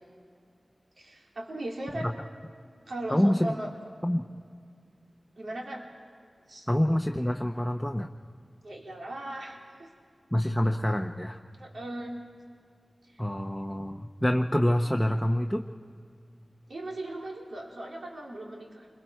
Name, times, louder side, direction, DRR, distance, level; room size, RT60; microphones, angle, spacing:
voice 1, 1.0-2.1 2.9-3.7 5.4-5.8 6.5-6.7 8.6-9.9 11.6-12.1 13.1-13.2 16.7-18.9, right 1 dB, 85° right, -1 dB, 2.8 m, -38 dB
voice 2, 3.1-3.5 4.0-4.2 6.7-8.1 10.3-11.4 13.2-15.6, equal, 5° left, 2 dB, 0.8 m, -26 dB
29.0 x 22.0 x 4.6 m, 2.3 s
wide cardioid pair, 75°, 0 cm